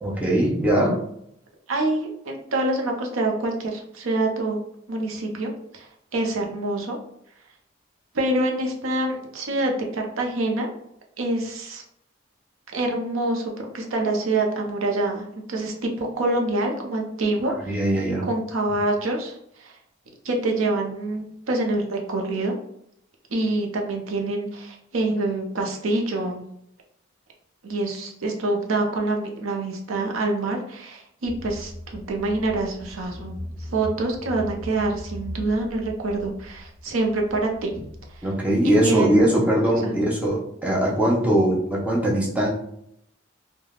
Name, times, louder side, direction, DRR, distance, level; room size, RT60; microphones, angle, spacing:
voice 1, 0.0-1.0 17.4-18.3 38.2-42.5, right 1 dB, 5° right, -4 dB, 0.6 m, -21 dB
voice 2, 1.7-4.6 4.9-5.9 6.1-7.0 8.1-10.7 11.2-11.8 12.7-17.8 18.2-19.8 20.2-22.6 23.3-26.4 27.6-33.4 33.7-37.7 38.8-39.5 39.8-39.9, right 2 dB, 80° right, 2 dB, 0.6 m, -26 dB
Car / Engine, 31.2-38.3, left 1 dB, 50° right, 0.8 m, -39 dB
3.2 x 2.1 x 2.3 m, 0.73 s
head